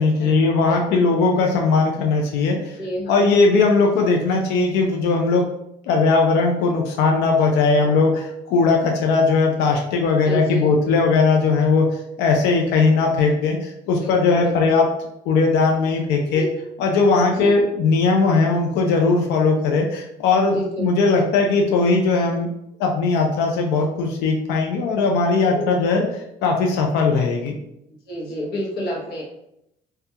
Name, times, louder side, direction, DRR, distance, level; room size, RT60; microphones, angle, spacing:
voice 1, 0.0-2.8 3.1-5.4 5.9-11.9 12.2-14.9 15.3-16.5 16.8-22.5 22.8-26.1 26.4-27.5, left 4 dB, 90° left, 1 dB, 0.4 m, -19 dB
voice 2, 2.8-3.2 7.8-7.9 10.2-10.7 14.0-14.6 16.3-16.5 17.2-17.6 20.5-20.9 25.5-25.7 28.1-29.2, equal, 70° left, -3 dB, 0.9 m, -29 dB
2.3 x 2.2 x 2.7 m, 0.82 s
cardioid pair, 110°, 17 cm